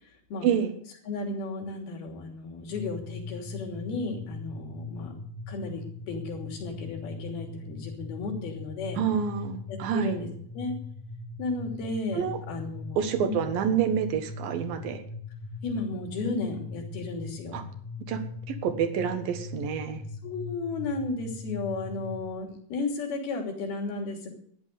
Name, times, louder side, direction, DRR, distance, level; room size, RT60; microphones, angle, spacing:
voice 1, 1.1-5.1 5.5-9.0 9.7-10.3 10.5-10.7 11.4-13.4 15.6-17.6 20.2-24.3, left 3 dB, 75° left, 1 dB, 5.0 m, -34 dB
sound 1, 2.7-22.3, left 3 dB, 15° left, 0.9 m, -40 dB
voice 2, 9.0-10.2 12.1-12.4 13.0-15.0 17.5-17.6 18.1-18.2 18.5-20.0, right 8 dB, 70° right, 9 dB, 3.1 m, -27 dB
14.0 x 11.0 x 6.7 m, 0.65 s
omnidirectional pair, 4.4 m